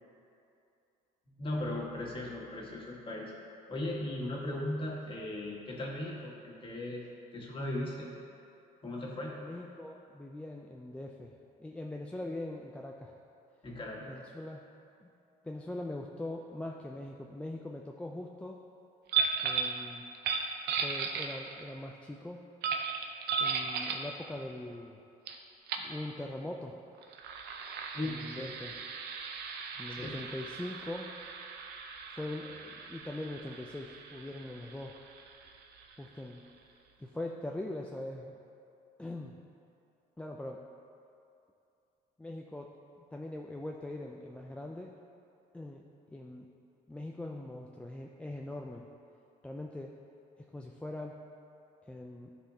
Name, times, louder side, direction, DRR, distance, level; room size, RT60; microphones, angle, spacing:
voice 1, 1.4-3.3 3.7-7.1 7.3-8.1 8.8-9.3 13.6-14.0 27.9-28.4 29.9-30.3, left 1 dB, 30° left, -3 dB, 1.6 m, -37 dB
voice 2, 9.3-11.3 11.6-13.2 14.0-14.6 15.0-15.1 15.4-18.6 19.4-20.0 20.8-22.4 23.4-25.0 25.8-26.8 28.0-28.8 29.8-31.1 32.1-35.0 36.0-36.4 37.0-38.3 39.0-39.4 40.2-40.6 42.2-42.7 43.1-45.0 45.5-45.9 46.1-46.5 46.9-48.9 49.4-49.9 50.4-51.2 51.9-52.3, left 1 dB, 5° left, 0 dB, 0.3 m, -42 dB
sound 1, 19.1-19.8 20.1-21.7 22.6-24.1 25.3-25.4 25.7-25.9 27.0-36.3, right 5 dB, 75° right, 0.6 m, -36 dB
12.5 x 4.2 x 2.8 m, 2.7 s
cardioid pair, 110°, 17 cm